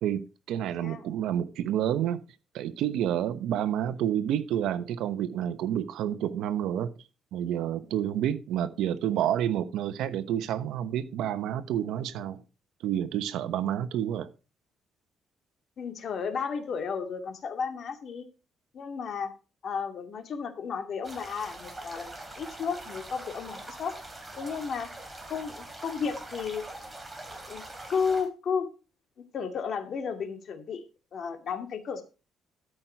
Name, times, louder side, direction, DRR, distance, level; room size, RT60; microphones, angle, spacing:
voice 1, 0.0-2.2 2.5-6.9 7.3-12.4 12.8-14.3, right 10 dB, 85° right, 1.0 m, -29 dB
voice 2, 15.8-18.3 18.7-19.3 19.6-24.0 24.4-24.9 25.3-26.7 27.5-27.6 27.9-28.7 29.3-30.8 31.1-32.0, left 6 dB, 50° left, 2.3 m, -33 dB
sound 1, 21.0-28.3, right 2 dB, 10° right, 2.9 m, -43 dB
13.5 x 6.3 x 4.5 m
cardioid pair, 120°, 0 cm